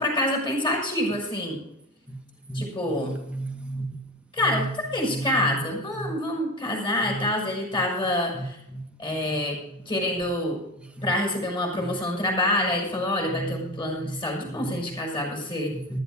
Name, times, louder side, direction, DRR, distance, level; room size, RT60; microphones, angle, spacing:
voice 1, 0.0-1.6 2.5-3.1 4.3-8.6 9.0-9.6 9.9-10.6 11.0-15.7, left 1 dB, 20° left, 5.9 m, -26 dB
voice 2, 2.9-3.9 4.4-5.6 6.0-6.1 7.0-7.3 8.3-8.8 9.7-9.8 10.8-11.1 11.8-12.0 13.3-14.2 14.6-15.0 15.4-16.0, right 2 dB, 5° right, 1.9 m, -34 dB
14.5 x 14.0 x 3.8 m
head